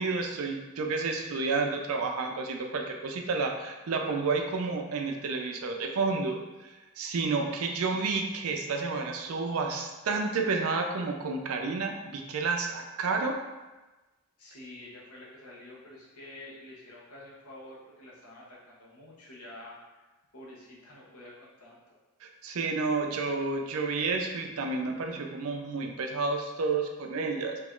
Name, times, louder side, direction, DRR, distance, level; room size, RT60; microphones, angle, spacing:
voice 1, 0.0-13.4 22.2-27.6, right 4 dB, 75° right, 3 dB, 0.4 m, -30 dB
voice 2, 14.4-20.1 20.3-21.8, left 1 dB, 85° left, -5 dB, 0.9 m, -48 dB
2.9 x 2.4 x 3.6 m, 1.1 s
head